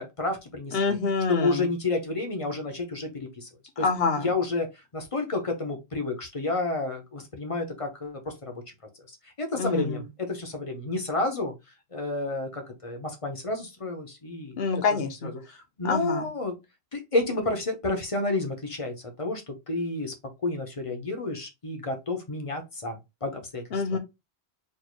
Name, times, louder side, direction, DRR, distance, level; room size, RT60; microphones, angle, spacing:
voice 1, 0.0-1.0 1.3-3.5 3.8-3.9 4.2-8.5 9.1-11.5 11.9-14.6 14.9-16.5 16.9-20.1 20.4-24.0, left 2 dB, 35° left, 0.9 m, -30 dB
voice 2, 0.7-1.7 3.8-4.3 9.6-10.0 14.6-15.3 15.8-16.2 23.7-24.0, left 4 dB, 70° left, 1.1 m, -26 dB
4.4 x 2.7 x 3.1 m
omnidirectional pair, 1.1 m